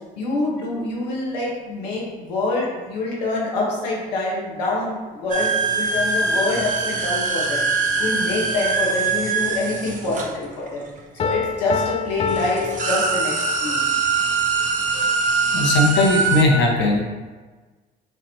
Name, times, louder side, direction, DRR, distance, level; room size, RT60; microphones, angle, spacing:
voice 1, 0.2-7.6 8.0-10.8 11.1-13.8, left 2 dB, 90° left, -3 dB, 1.2 m, -26 dB
sound 1, 5.3-11.0 11.9-12.0 12.3-16.4, right 4 dB, 40° right, 0.8 m, -23 dB
Piano, 11.2-13.8, left 6 dB, 30° left, 0.5 m, -28 dB
voice 2, 15.5-17.0, left 2 dB, 60° left, -1 dB, 1.1 m, -18 dB
6.8 x 2.8 x 2.8 m, 1.3 s
hypercardioid pair, 65°, 21 cm